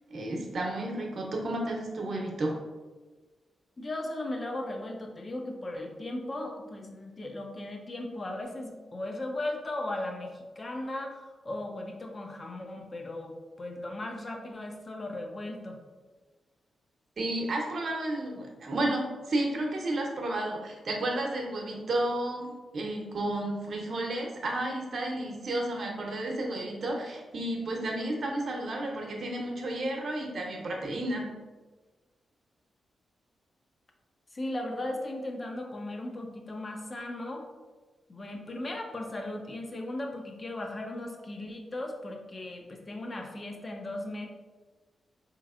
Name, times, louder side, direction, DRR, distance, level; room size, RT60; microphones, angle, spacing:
voice 1, 0.1-2.5 17.2-31.3, right 1 dB, 60° right, 0 dB, 0.8 m, -32 dB
voice 2, 3.8-15.8 34.3-37.5 38.1-44.3, left 1 dB, 40° left, 2 dB, 0.7 m, -37 dB
4.0 x 3.0 x 2.4 m, 1.3 s
cardioid pair, 55°, 0 cm